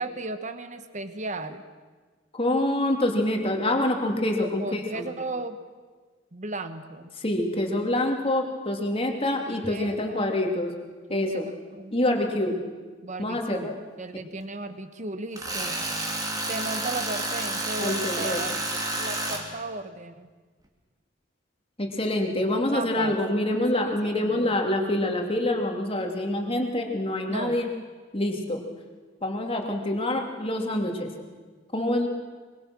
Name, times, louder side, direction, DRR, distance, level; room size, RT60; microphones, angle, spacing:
voice 1, 0.0-1.6 4.4-5.6 6.3-7.1 9.5-10.3 11.1-11.4 11.7-12.0 13.0-13.7 14.0-15.8 16.5-18.5 18.9-20.3 22.7-23.2 23.8-24.5 27.3-27.6, right 2 dB, 40° right, 10 dB, 1.4 m, -35 dB
voice 2, 2.3-5.0 7.2-10.7 11.1-11.5 11.9-12.6 13.2-13.7 17.8-18.4 21.8-27.7 28.1-28.6 29.2-31.1 31.7-32.1, left 1 dB, 30° left, 2 dB, 2.8 m, -26 dB
Tools, 15.4-19.4, right 2 dB, 20° right, 3.1 m, -30 dB
24.0 x 23.5 x 6.2 m, 1.4 s
head